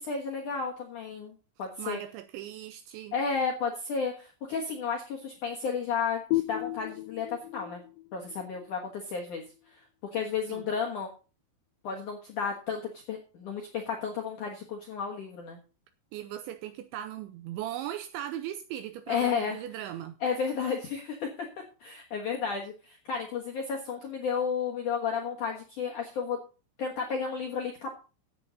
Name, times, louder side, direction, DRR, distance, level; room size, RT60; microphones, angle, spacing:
voice 1, 0.1-2.0 3.1-7.8 8.1-9.8 10.1-11.1 11.8-15.6 19.1-19.6 20.2-21.5 21.8-26.4 26.8-27.9, left 6 dB, 70° left, 1.9 m, -32 dB
voice 2, 1.8-3.2 10.5-10.6 16.1-20.2, right 12 dB, 80° right, 2.7 m, -38 dB
sound 1, 6.3-9.7, left 18 dB, 90° left, 2.5 m, -35 dB
13.0 x 8.8 x 4.0 m
omnidirectional pair, 5.9 m